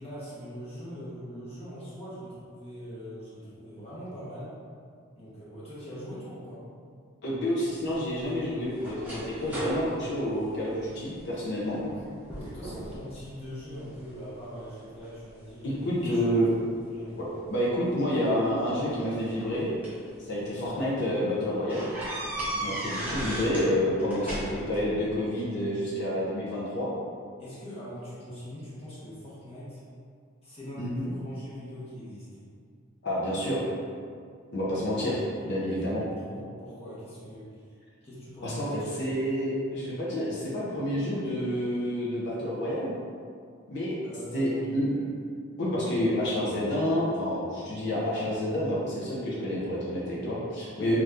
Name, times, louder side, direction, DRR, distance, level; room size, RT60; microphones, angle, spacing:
voice 1, 0.0-4.5 5.0-6.7 11.8-16.3 16.5-17.3 20.5-20.8 22.4-22.9 27.4-29.8 30.4-32.5 35.4-37.7 38.0-38.9 44.0-44.7 50.8-51.0, equal, 30° left, -9 dB, 0.9 m, -42 dB
voice 2, 7.2-11.8 15.6-16.5 17.2-19.7 20.3-21.9 22.6-26.9 30.8-31.0 33.0-33.6 34.5-35.2 35.4-36.0 38.4-42.9 43.7-44.0 44.3-45.1 45.6-51.0, equal, 55° left, -7 dB, 0.6 m, -29 dB
sound 1, 7.8-11.2 11.7-12.0 12.3-13.0 13.4-14.1 14.7-16.2 17.3-17.5 18.7-20.1 20.6-20.8 21.1-21.2 21.7-23.7 24.0-24.8, right 1 dB, 10° right, 0.6 m, -36 dB
2.7 x 2.3 x 3.3 m, 2.2 s
head